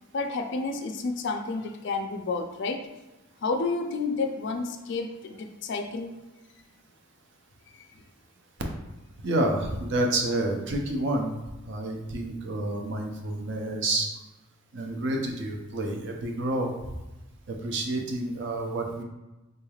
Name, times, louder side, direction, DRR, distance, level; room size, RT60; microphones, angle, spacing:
voice 1, 0.1-2.8 3.4-6.1, left 3 dB, 60° left, 5 dB, 0.4 m, -30 dB
voice 2, 9.2-11.3 11.6-14.1 14.7-16.7 17.5-19.0, right 1 dB, 60° right, 2 dB, 0.5 m, -29 dB
3.8 x 3.2 x 2.3 m, 1.1 s
head